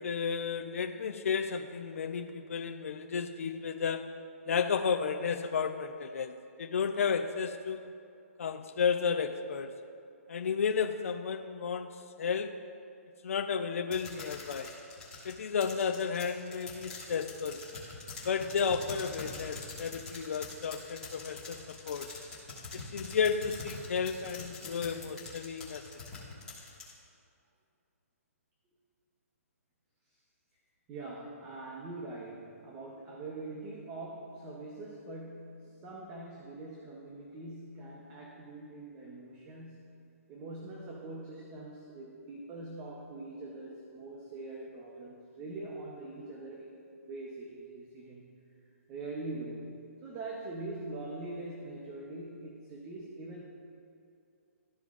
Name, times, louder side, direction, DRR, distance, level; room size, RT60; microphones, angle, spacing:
voice 1, 0.0-4.1 4.5-8.0 8.4-9.7 10.3-12.6 13.2-14.7 15.2-17.6 18.2-22.1 22.7-25.8, left 6 dB, 65° left, 4 dB, 0.5 m, -32 dB
sound 1, 13.9-26.9, left 3 dB, 10° left, 1.6 m, -44 dB
voice 2, 30.9-39.9 40.3-48.3 48.9-53.4, right 2 dB, 15° right, -3 dB, 0.7 m, -43 dB
14.0 x 5.0 x 2.4 m, 2.5 s
hypercardioid pair, 170°, 8 cm